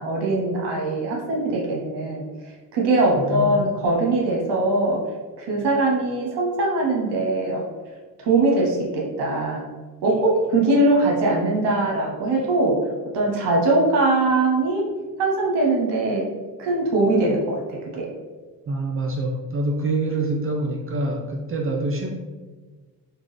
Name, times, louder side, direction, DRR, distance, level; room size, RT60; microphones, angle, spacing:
voice 1, 0.0-2.3 2.7-5.0 5.4-7.7 8.2-9.6 10.0-12.8 13.1-14.9 15.2-16.2 16.6-18.1, right 2 dB, 60° right, -2 dB, 0.9 m, -21 dB
voice 2, 3.1-3.6 18.7-22.1, right 2 dB, 30° right, 1 dB, 0.4 m, -26 dB
3.7 x 2.3 x 3.2 m, 1.3 s
hypercardioid pair, 50°, 46 cm